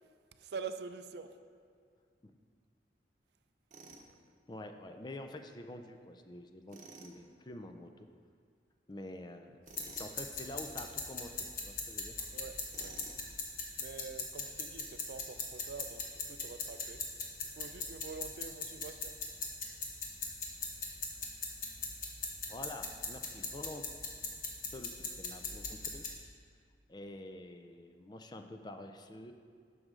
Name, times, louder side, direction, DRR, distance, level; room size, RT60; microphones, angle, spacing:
voice 1, 0.4-1.3 12.3-12.9 13.8-17.0 17.4-19.2, right 5 dB, 65° right, 9 dB, 0.4 m, -46 dB
Tools, 3.7-4.1 6.7-7.2 9.6-10.1 12.7-13.3, right 3 dB, 45° right, 0.9 m, -52 dB
voice 2, 4.5-8.1 8.9-12.2 22.5-23.9 24.2-24.3 24.7-26.0 26.9-29.3, left 1 dB, 25° left, 6 dB, 0.4 m, -47 dB
sound 1, 9.7-26.1, left 4 dB, 50° left, 1.2 m, -41 dB
11.0 x 6.5 x 3.7 m, 2.1 s
head